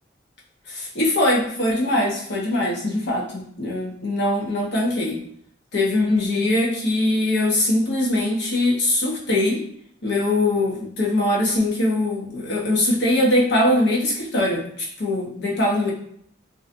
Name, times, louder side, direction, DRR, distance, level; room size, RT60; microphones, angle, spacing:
voice 1, 0.7-5.2 5.7-9.6 10.0-15.9, left 1 dB, 65° left, -4 dB, 0.8 m, -22 dB
2.6 x 2.2 x 2.5 m, 0.65 s
head